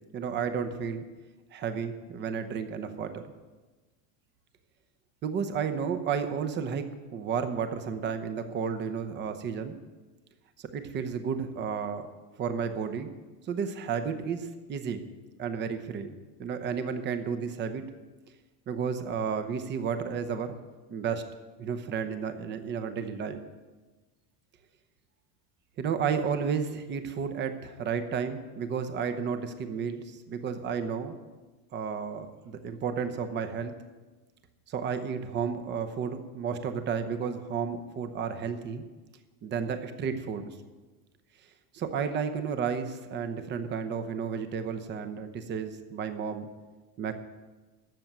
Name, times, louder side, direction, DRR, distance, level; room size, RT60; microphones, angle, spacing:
voice 1, 0.1-1.0 1.5-3.2 5.2-9.7 10.7-12.1 12.4-13.1 13.4-15.0 15.4-17.8 18.7-20.6 20.9-21.2 21.6-23.4 25.8-31.2 31.7-33.7 34.7-38.8 39.4-40.5 41.7-46.5 47.0-47.1, right 6 dB, 25° right, 9 dB, 0.9 m, -32 dB
13.5 x 6.9 x 9.0 m, 1.2 s
supercardioid pair, 165°, 45 cm